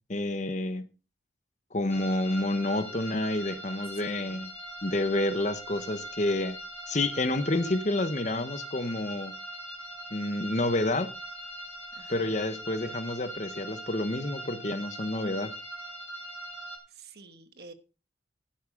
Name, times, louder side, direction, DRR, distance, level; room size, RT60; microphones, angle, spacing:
voice 1, 0.1-0.9 1.7-4.5 4.8-6.6 6.9-9.3 10.1-11.1 12.1-15.5, left 2 dB, 40° left, 1.0 m, -29 dB
sound 1, 1.9-16.8, equal, 10° left, 4.6 m, -41 dB
voice 2, 4.0-4.5 11.9-12.4 16.9-17.7, right 3 dB, 60° right, 1.3 m, -50 dB
12.0 x 9.7 x 3.8 m
head